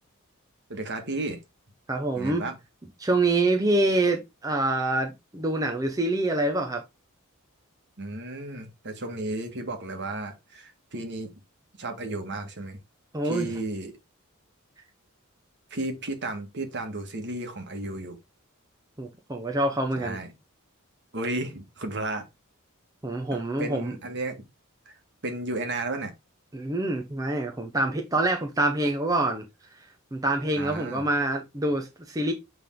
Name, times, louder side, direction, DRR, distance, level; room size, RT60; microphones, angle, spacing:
voice 1, 0.7-1.4 2.1-2.6 8.0-11.4 11.8-12.8 13.2-13.9 15.7-18.2 19.9-20.3 21.1-22.2 23.3-24.5 24.8-24.9 25.2-26.1 30.6-31.1, right 2 dB, 55° right, 1.6 m, -33 dB
voice 2, 1.9-2.4 3.0-6.8 13.1-13.5 19.0-20.2 23.0-23.9 26.5-29.4 30.1-32.3, right 2 dB, 15° right, 0.8 m, -26 dB
8.1 x 3.5 x 3.7 m
head